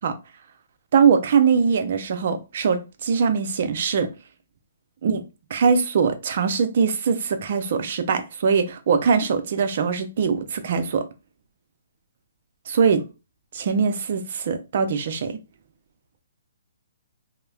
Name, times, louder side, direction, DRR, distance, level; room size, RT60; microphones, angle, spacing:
voice 1, 0.9-4.1 5.0-5.2 5.5-11.1 12.7-13.1 13.5-15.4, right 6 dB, 55° right, 0.5 m, -22 dB
3.0 x 2.0 x 2.3 m
hypercardioid pair, 145°, 0 cm